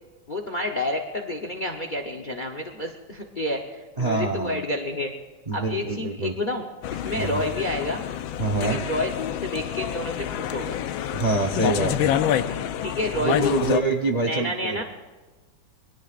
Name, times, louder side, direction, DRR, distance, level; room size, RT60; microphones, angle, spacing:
voice 1, 0.3-5.1 5.5-8.0 8.6-10.8 12.8-13.5 14.2-14.8, left 1 dB, 40° left, 4 dB, 0.7 m, -29 dB
voice 2, 4.0-4.6 5.5-6.3 7.2-7.4 8.4-8.8 11.1-12.2 13.2-14.8, right 3 dB, 35° right, 3 dB, 0.6 m, -25 dB
sound 1, 6.8-13.8, left 10 dB, 90° left, 1.5 m, -27 dB
27.0 x 21.5 x 2.5 m, 1.3 s
omnidirectional pair, 2.1 m